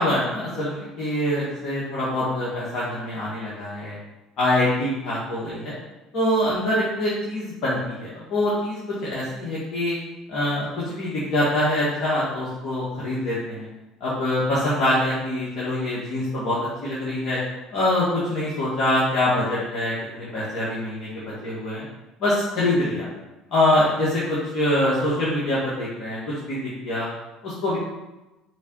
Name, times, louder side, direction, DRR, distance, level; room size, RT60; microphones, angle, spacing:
voice 1, 0.0-4.0 4.4-5.7 6.1-10.0 10.3-13.7 14.0-17.4 17.7-21.8 22.2-23.1 23.5-27.1 27.4-27.8, left 1 dB, 55° left, -9 dB, 2.1 m, -24 dB
5.7 x 3.8 x 4.7 m, 1.0 s
supercardioid pair, 90°, 0 cm